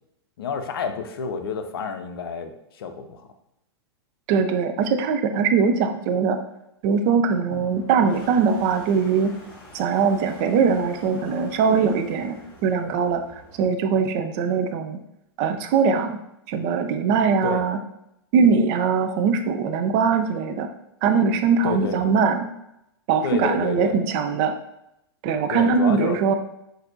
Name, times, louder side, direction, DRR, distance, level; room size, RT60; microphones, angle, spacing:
voice 1, 0.4-3.3 7.5-7.9 17.4-17.6 21.6-22.2 23.2-23.9 25.5-26.2, left 5 dB, 60° left, 7 dB, 0.5 m, -30 dB
voice 2, 4.3-6.4 6.8-9.3 9.7-15.0 15.4-16.2 16.5-17.8 18.3-20.7 21.0-22.5 23.1-24.5 25.2-26.3, right 5 dB, 40° right, 7 dB, 0.4 m, -21 dB
Toilet flush, 7.5-13.6, left 1 dB, 35° left, 1.4 m, -45 dB
5.8 x 2.7 x 2.5 m, 0.82 s
figure-of-eight pair, 105°, 14 cm